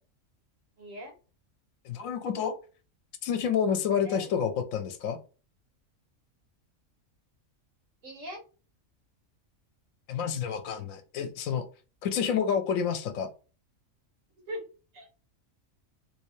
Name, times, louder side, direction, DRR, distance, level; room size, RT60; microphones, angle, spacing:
voice 1, 0.8-1.1 4.0-4.3 8.0-8.4 14.5-14.6 14.9-15.1, equal, 75° right, 1 dB, 1.6 m, -40 dB
voice 2, 1.8-2.6 3.2-5.2 10.1-11.6 12.0-13.3, left 7 dB, 85° left, 7 dB, 1.0 m, -29 dB
3.3 x 2.7 x 3.1 m, 0.34 s
omnidirectional pair, 1.4 m